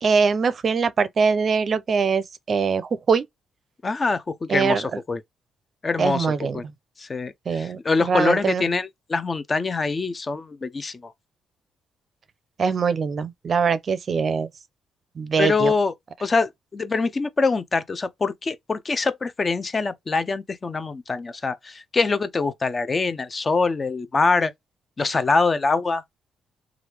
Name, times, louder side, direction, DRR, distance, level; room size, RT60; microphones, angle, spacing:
voice 1, 0.0-3.2 4.5-5.0 6.0-6.6 7.5-8.6 12.6-14.5 15.2-15.7, right 5 dB, 45° right, 0.5 m, -22 dB
voice 2, 3.8-5.2 5.8-6.3 6.5-6.6 7.0-11.1 15.4-15.9 16.2-24.5 25.0-26.0, left 4 dB, 30° left, 0.5 m, -24 dB
3.2 x 2.4 x 2.9 m
cardioid pair, 90°, 0 cm